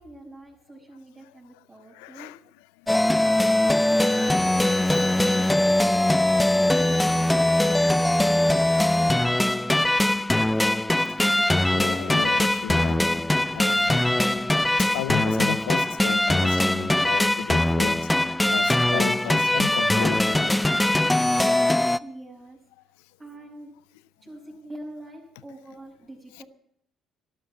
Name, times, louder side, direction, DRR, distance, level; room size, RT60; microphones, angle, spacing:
voice 1, 0.0-2.3 2.9-7.4 7.7-8.8 22.0-22.6 23.2-23.7 24.2-26.4, right 1 dB, 20° right, 5.8 m, -45 dB
voice 2, 1.9-2.9 4.9-5.1 6.1-6.6 10.5-10.8 11.7-13.1 13.5-14.5 14.8-18.1 18.5-20.7 26.3-26.4, left 18 dB, 90° left, 0.5 m, -35 dB
sound 1, 2.9-22.0, left 1 dB, 10° left, 0.6 m, -21 dB
13.5 x 12.0 x 7.6 m
supercardioid pair, 65°, 0 cm